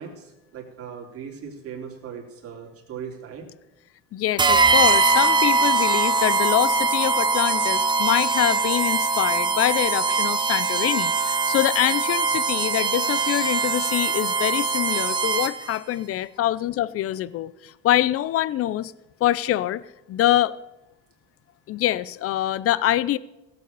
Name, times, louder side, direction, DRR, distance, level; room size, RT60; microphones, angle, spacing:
voice 1, 0.0-3.5, right 7 dB, 50° right, 3.5 m, -38 dB
voice 2, 4.1-18.9 19.2-20.5 21.7-23.2, left 13 dB, 50° left, 0.6 m, -24 dB
sound 1, 4.4-15.8, right 3 dB, 15° right, 0.8 m, -22 dB
16.5 x 8.0 x 6.8 m
cardioid pair, 115°, 30 cm